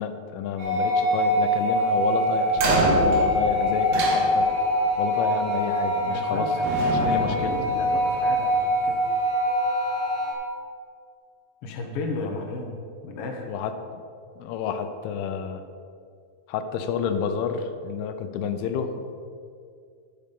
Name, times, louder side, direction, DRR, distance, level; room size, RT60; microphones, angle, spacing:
voice 1, 0.0-4.5 5.0-6.5 6.8-7.6 13.5-13.7 14.4-15.7 16.5-19.0, left 6 dB, 85° left, 8 dB, 2.8 m, -30 dB
sound 1, 0.6-10.3, equal, 85° right, 5.4 m, -23 dB
sound 2, 2.5-4.8 5.9-6.3 6.6-8.4, right 3 dB, 70° right, 3.4 m, -28 dB
voice 2, 6.0-9.0 11.6-12.7 13.0-13.5, left 3 dB, 60° left, 2 dB, 1.6 m, -33 dB
12.0 x 9.6 x 5.4 m, 2.3 s
omnidirectional pair, 4.4 m